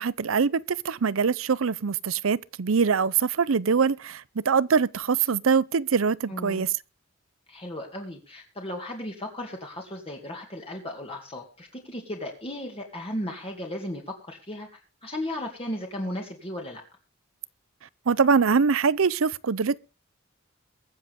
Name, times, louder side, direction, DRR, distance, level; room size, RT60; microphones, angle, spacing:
voice 1, 0.0-6.7 18.1-19.8, right 5 dB, 80° right, 0.6 m, -23 dB
voice 2, 6.3-6.7 7.5-16.8, left 1 dB, 30° left, 2.3 m, -35 dB
22.5 x 7.6 x 3.6 m
head